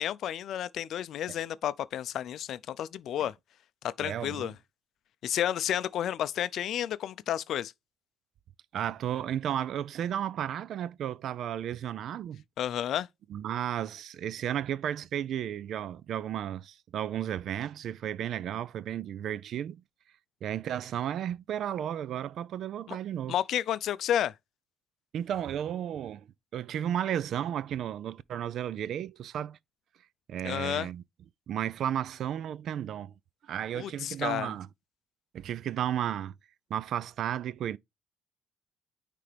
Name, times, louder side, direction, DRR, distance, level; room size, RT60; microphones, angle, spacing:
voice 1, 0.0-3.3 3.8-4.5 5.2-7.7 12.6-13.1 22.9-23.0 23.3-24.3 30.4-30.9 33.7-34.5, left 11 dB, 60° left, 0.5 m, -31 dB
voice 2, 4.0-4.5 8.7-12.4 13.3-19.8 20.4-23.3 25.1-26.3 26.5-29.6 30.3-31.0 31.5-33.1 33.5-34.7 35.3-36.3 36.7-37.8, right 10 dB, 60° right, 0.3 m, -33 dB
9.6 x 3.4 x 3.4 m
cardioid pair, 115°, 0 cm